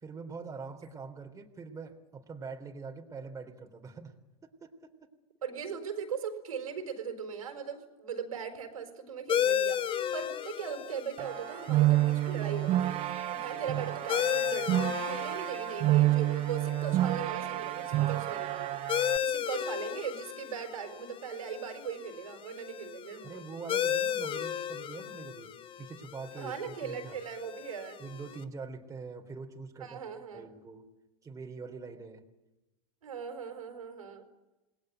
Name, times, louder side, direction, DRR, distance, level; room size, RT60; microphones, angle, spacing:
voice 1, 0.0-4.1 4.4-5.1 23.2-25.5 25.8-27.2 28.0-30.0 30.3-30.9 31.2-32.2, right 4 dB, 20° right, 3 dB, 3.6 m, -44 dB
voice 2, 5.4-13.0 13.3-23.4 26.4-28.0 29.8-30.5 33.0-34.2, right 7 dB, 80° right, 7 dB, 4.8 m, -39 dB
sound 1, 9.3-28.4, left 9 dB, 30° left, 1.1 m, -35 dB
sound 2, 11.2-19.2, right 15 dB, 35° right, 0.9 m, -29 dB
28.0 x 20.5 x 9.1 m, 1.0 s
hypercardioid pair, 100°, 18 cm